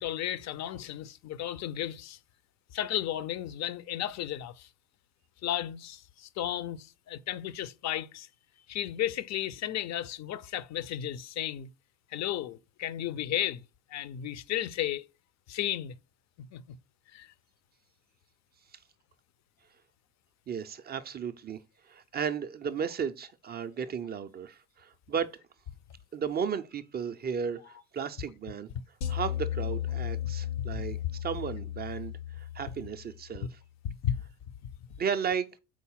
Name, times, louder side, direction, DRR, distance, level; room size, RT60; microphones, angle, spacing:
voice 1, 0.0-2.2 2.7-4.7 5.4-8.3 8.7-11.7 12.1-13.6 13.9-15.1 15.5-15.9 16.5-16.8 17.1-17.3 30.7-30.8 33.8-34.2, left 11 dB, 35° left, 0.5 m, -34 dB
voice 2, 20.5-21.6 21.9-25.3 26.1-28.7 29.1-33.6 35.0-35.5, right 7 dB, 20° right, 0.3 m, -34 dB
sound 1, 29.0-33.3, left 11 dB, 80° left, 1.0 m, -35 dB
4.7 x 4.0 x 5.5 m
hypercardioid pair, 60°, 50 cm